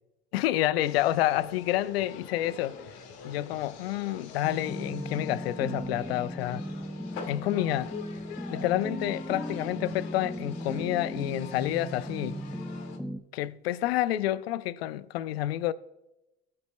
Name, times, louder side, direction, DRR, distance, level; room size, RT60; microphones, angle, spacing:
voice 1, 0.3-2.8 3.2-6.6 7.3-7.9 8.5-12.4 13.3-15.7, left 14 dB, 80° left, 0.5 m, -29 dB
sound 1, 0.8-13.0, left 6 dB, 60° left, 1.7 m, -45 dB
sound 2, 4.4-13.2, equal, ahead, 0.4 m, -37 dB
18.0 x 8.6 x 2.2 m
hypercardioid pair, 75°, 30 cm